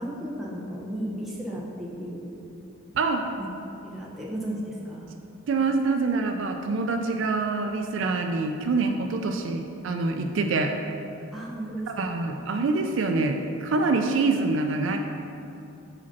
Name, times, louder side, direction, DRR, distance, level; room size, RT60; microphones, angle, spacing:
voice 1, 0.0-2.3 3.4-3.5 3.8-5.1 11.3-12.2, right 1 dB, ahead, -6 dB, 0.8 m, -34 dB
voice 2, 2.9-3.3 5.5-10.7 11.9-15.0, right 3 dB, 60° right, 4 dB, 0.3 m, -25 dB
4.9 x 4.2 x 5.8 m, 2.8 s
head